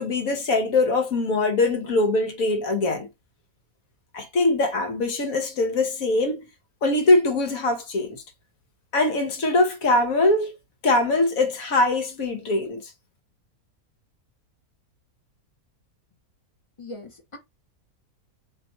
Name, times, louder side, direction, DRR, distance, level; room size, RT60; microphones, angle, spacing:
voice 1, 0.0-3.1 4.1-6.5 6.8-8.2 8.9-10.5 10.8-12.9, left 2 dB, 70° left, 1.5 m, -22 dB
voice 2, 16.8-17.4, left 2 dB, 25° left, 1.1 m, -40 dB
4.1 x 3.0 x 4.2 m
omnidirectional pair, 1.5 m